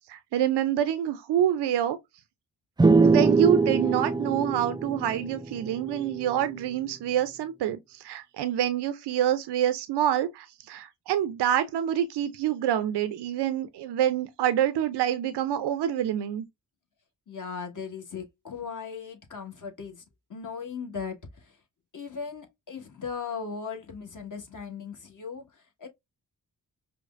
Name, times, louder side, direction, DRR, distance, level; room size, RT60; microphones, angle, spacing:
voice 1, 0.1-2.0 3.0-16.4, right 10 dB, 90° right, 0.6 m, -27 dB
sound 1, 2.8-6.4, right 4 dB, 10° right, 0.3 m, -23 dB
voice 2, 17.3-20.0 20.3-21.6 21.9-25.9, left 6 dB, 50° left, 1.5 m, -38 dB
5.1 x 2.1 x 2.4 m
cardioid pair, 50°, 39 cm